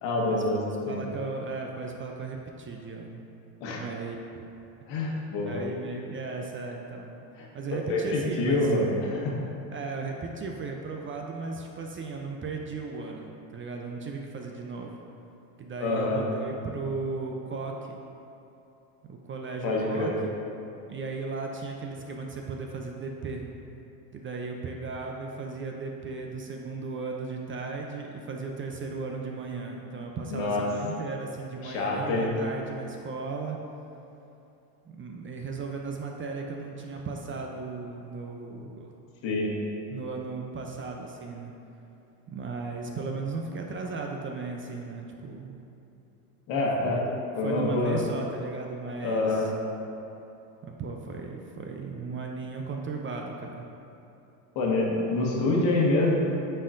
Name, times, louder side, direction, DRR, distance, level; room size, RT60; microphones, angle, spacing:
voice 1, 0.0-0.6 0.9-1.0 3.6-3.8 4.9-5.6 7.9-9.4 15.8-16.2 19.6-20.1 30.3-30.7 31.6-32.3 39.2-39.5 46.5-47.0 47.4-48.0 49.0-49.5 54.5-56.1, left 2 dB, 70° left, -2 dB, 1.4 m, -26 dB
voice 2, 0.9-3.2 3.7-4.2 5.5-7.2 7.5-8.7 9.7-15.0 15.6-18.0 19.0-20.3 20.8-23.5 24.1-33.6 34.9-38.9 39.9-41.5 42.3-45.6 46.8-49.5 50.6-53.7, right 4 dB, 30° right, 1 dB, 0.4 m, -36 dB
8.8 x 4.4 x 2.5 m, 2.8 s
supercardioid pair, 100°, 47 cm